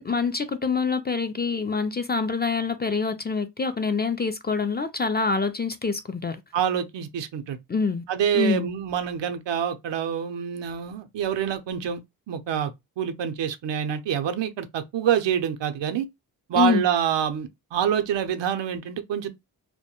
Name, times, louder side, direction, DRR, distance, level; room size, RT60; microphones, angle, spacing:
voice 1, 0.0-6.4 7.7-8.0 8.3-8.7 16.5-16.8, left 5 dB, 25° left, 0.3 m, -25 dB
voice 2, 6.5-7.6 8.1-12.0 12.3-16.1 16.5-19.3, right 9 dB, 75° right, 0.6 m, -26 dB
2.2 x 2.1 x 2.8 m
cardioid pair, 40°, 44 cm